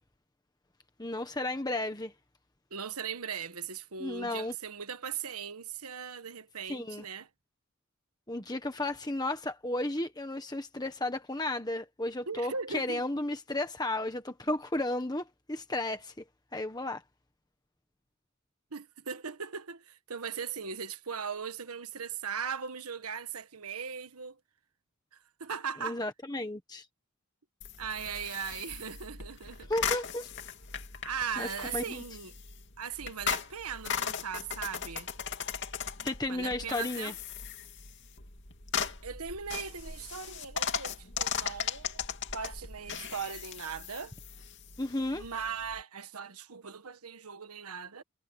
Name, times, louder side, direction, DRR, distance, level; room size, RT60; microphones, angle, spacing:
voice 1, 1.0-2.1 4.0-4.5 6.7-7.0 8.3-16.2 16.5-17.0 25.8-26.9 29.7-30.3 31.4-32.0 36.0-37.1 44.8-45.2, left 2 dB, 20° left, 1.4 m, -33 dB
voice 2, 2.7-7.3 12.3-13.0 18.7-24.4 25.1-26.0 27.8-29.7 31.0-32.3 32.8-35.1 36.3-37.1 39.0-42.0 42.3-44.1 45.1-48.0, right 6 dB, 85° right, 1.4 m, -39 dB
sound 1, 27.6-45.8, left 7 dB, 55° left, 2.7 m, -38 dB
head